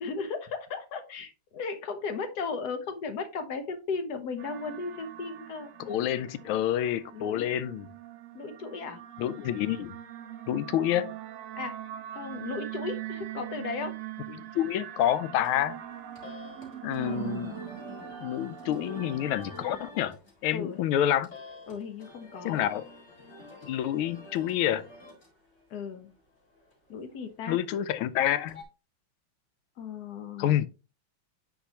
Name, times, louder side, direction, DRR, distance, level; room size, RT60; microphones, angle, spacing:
voice 1, 0.0-5.7 7.1-7.6 8.3-9.0 11.5-11.8 12.1-14.0 18.7-19.1 20.5-20.8 21.7-22.7 25.7-26.1 26.9-27.6 29.8-30.6, left 4 dB, 55° left, 1.3 m, -36 dB
sound 1, 4.4-19.9, right 12 dB, 75° right, 0.7 m, -42 dB
voice 2, 5.8-7.9 9.2-9.9 10.5-11.1 14.3-15.8 16.8-17.6 18.2-20.2 20.4-21.3 22.4-22.8 23.6-24.9 27.5-28.6 30.4-30.7, left 11 dB, 85° left, 1.5 m, -28 dB
sound 2, 15.3-28.6, left 2 dB, 35° left, 2.3 m, -49 dB
9.1 x 4.6 x 2.9 m
omnidirectional pair, 2.3 m